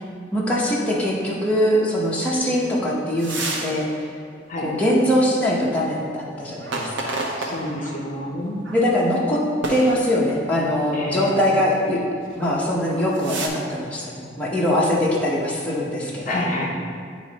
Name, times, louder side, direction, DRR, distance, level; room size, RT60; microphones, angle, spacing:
voice 1, 0.3-3.9 4.6-7.2 8.7-9.4 9.7-12.0 12.3-16.6, equal, 5° left, -6 dB, 0.9 m, -22 dB
sound 1, 3.2-3.8 4.2-4.3 6.6-8.0 8.6-8.8 9.6-10.5 12.3-12.5 12.9-13.5, right 2 dB, 75° right, 0.8 m, -30 dB
voice 2, 7.4-8.6 10.9-11.4 16.3-16.7, left 1 dB, 45° left, -2 dB, 0.8 m, -28 dB
9.3 x 3.1 x 4.1 m, 2.1 s
head